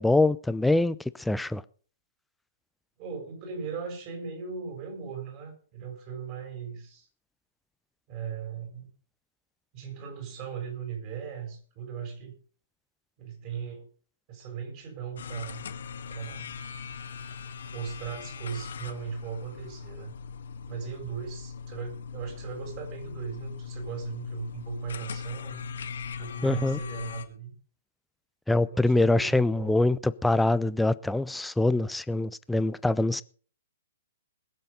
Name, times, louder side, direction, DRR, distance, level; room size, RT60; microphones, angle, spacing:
voice 1, 0.0-1.6 26.4-26.8 28.5-33.2, left 2 dB, 5° left, 0.5 m, -24 dB
voice 2, 3.0-7.1 8.1-8.9 9.7-12.4 13.2-13.9 14.3-15.7 16.1-16.6 17.7-20.1 20.7-25.6 26.2-27.6 28.6-29.7, right 7 dB, 35° right, 6.3 m, -38 dB
sound 1, 15.2-27.2, left 5 dB, 60° left, 1.7 m, -39 dB
21.0 x 7.7 x 5.3 m
figure-of-eight pair, 115°, 0 cm